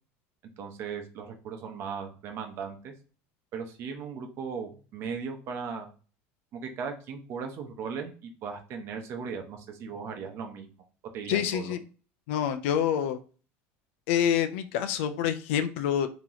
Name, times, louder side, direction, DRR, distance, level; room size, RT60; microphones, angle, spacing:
voice 1, 0.6-2.9 3.5-5.9 6.5-10.7 11.1-11.7, right 6 dB, 40° right, 4 dB, 0.8 m, -37 dB
voice 2, 11.3-11.8 12.3-13.2 14.1-16.1, left 9 dB, 85° left, 9 dB, 0.5 m, -27 dB
3.0 x 2.9 x 3.9 m, 0.37 s
cardioid pair, 170°, 7 cm